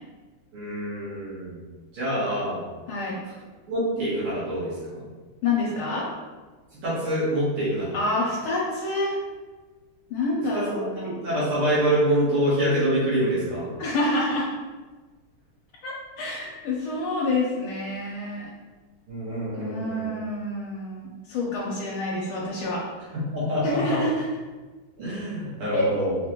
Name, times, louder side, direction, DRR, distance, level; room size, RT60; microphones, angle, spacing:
voice 1, 0.5-1.6 1.9-2.6 3.7-5.0 6.8-8.0 10.5-10.9 11.2-13.7 19.1-20.1 23.3-24.0 25.0-26.2, right 1 dB, 80° right, -10 dB, 2.5 m, -25 dB
voice 2, 2.9-3.2 5.4-6.1 7.9-9.2 10.1-11.2 13.8-14.5 15.8-18.5 19.5-23.1 23.6-24.3 25.7-25.9, left 2 dB, 75° left, -5 dB, 1.5 m, -28 dB
5.1 x 2.5 x 3.0 m, 1.3 s
omnidirectional pair, 2.3 m